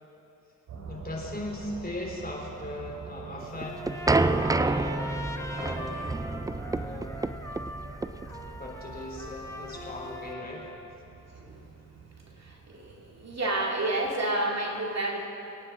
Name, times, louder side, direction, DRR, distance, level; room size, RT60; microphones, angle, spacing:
sound 1, 0.7-13.4, right 5 dB, 75° right, 2.8 m, -46 dB
voice 1, 0.9-5.1 5.5-6.0 6.7-7.4 7.6-7.8 8.5-10.7, left 1 dB, 25° left, -1 dB, 3.6 m, -38 dB
sound 2, 3.4-10.3, right 2 dB, 10° right, 0.4 m, -29 dB
Trumpet, 3.6-10.9, left 1 dB, 10° left, 1.7 m, -41 dB
voice 2, 12.4-15.3, right 2 dB, 45° right, -1 dB, 2.3 m, -30 dB
25.0 x 9.2 x 3.7 m, 2.8 s
supercardioid pair, 55°, 36 cm